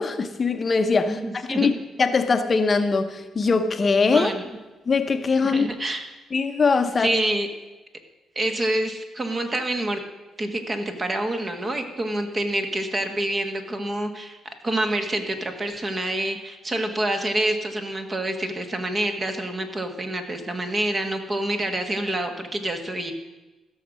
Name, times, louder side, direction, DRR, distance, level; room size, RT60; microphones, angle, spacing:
voice 1, 0.0-1.2 1.5-1.7 2.0-4.3 4.9-5.7 6.3-7.1, left 4 dB, 35° left, 8 dB, 0.8 m, -21 dB
voice 2, 1.0-1.7 4.1-4.4 5.4-6.0 7.0-7.5 8.3-10.0 10.4-14.4 14.6-23.1, right 1 dB, 30° right, 6 dB, 1.5 m, -27 dB
15.0 x 6.5 x 6.3 m, 1.1 s
cardioid pair, 90°, 0 cm